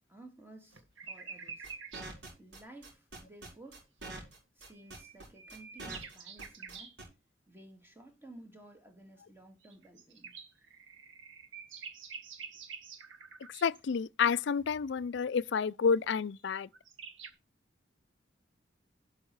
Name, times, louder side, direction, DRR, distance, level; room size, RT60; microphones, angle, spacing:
voice 1, 0.0-1.7 2.4-3.8 4.6-7.0 7.5-10.4, right 1 dB, 10° right, 2.2 m, -54 dB
sound 1, 0.7-2.1 4.6-6.9 9.6-13.8 16.4-16.5 16.7-17.3, right 5 dB, 90° right, 1.6 m, -47 dB
sound 2, 1.6-7.0, right 2 dB, 60° right, 4.7 m, -45 dB
voice 2, 13.6-16.7, left 6 dB, 65° left, 0.4 m, -29 dB
11.5 x 5.6 x 4.7 m
head